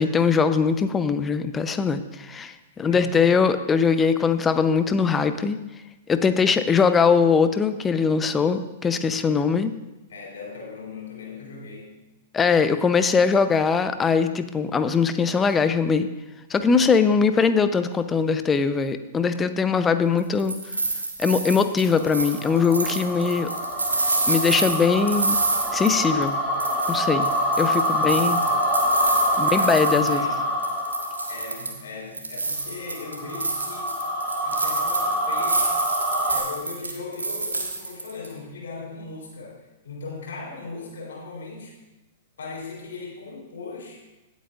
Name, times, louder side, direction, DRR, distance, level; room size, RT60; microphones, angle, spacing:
voice 1, 0.0-5.6 6.1-9.7 12.3-16.1 16.5-20.6 21.2-23.5 24.3-25.4 25.7-26.4 26.9-27.3 27.6-28.4 29.4-30.3, left 5 dB, 15° left, 11 dB, 0.7 m, -21 dB
voice 2, 2.7-3.3 10.1-12.0 27.9-28.6 29.4-30.5 31.3-34.0 34.4-35.8 36.3-41.8 42.4-44.0, left 4 dB, 70° left, -3 dB, 3.4 m, -38 dB
sound 1, 20.2-26.3 26.6-30.4 30.6-31.8 32.1-38.3, right 3 dB, 85° right, 1.5 m, -28 dB
sound 2, 21.8-31.6 32.7-36.4, equal, 25° right, 2.7 m, -26 dB
18.0 x 8.1 x 2.5 m, 1.0 s
figure-of-eight pair, 105°, 0 cm